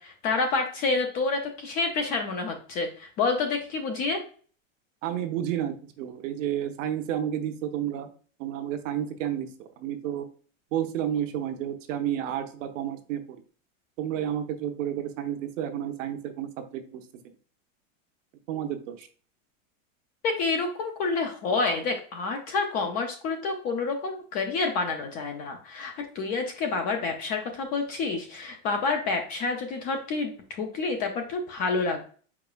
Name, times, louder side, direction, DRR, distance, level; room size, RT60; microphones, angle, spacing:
voice 1, 0.0-4.2 20.2-32.0, left 4 dB, 25° left, 4 dB, 0.4 m, -28 dB
voice 2, 5.0-8.1 8.4-10.3 10.7-13.4 14.0-17.0 18.5-19.1, right 10 dB, 70° right, 6 dB, 0.9 m, -31 dB
4.9 x 4.7 x 2.3 m, 0.42 s
supercardioid pair, 155°, 39 cm